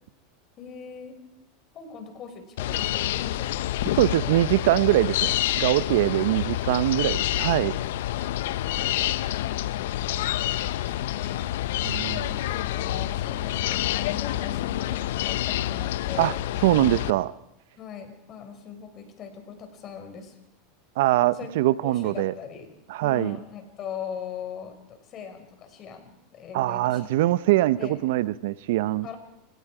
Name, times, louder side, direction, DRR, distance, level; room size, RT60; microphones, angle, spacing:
voice 1, 0.6-1.2 1.7-3.6 3.9-4.4 4.7-5.0 6.3-6.4 8.6-9.1 10.7-11.5 12.4-16.4 17.8-20.4 21.3-21.6 21.8-22.7 23.0-27.1 27.8-28.0 29.0-29.2, left 7 dB, 40° left, 5 dB, 5.5 m, -40 dB
sound 1, 2.6-17.1, left 13 dB, 75° left, 0.8 m, -28 dB
voice 2, 4.0-7.7 11.9-12.4 16.2-16.3 16.6-17.3 21.0-22.3 22.9-23.4 26.5-29.1, right 16 dB, 70° right, 18 dB, 0.7 m, -23 dB
30.0 x 17.5 x 4.9 m, 0.82 s
hypercardioid pair, 105°, 0 cm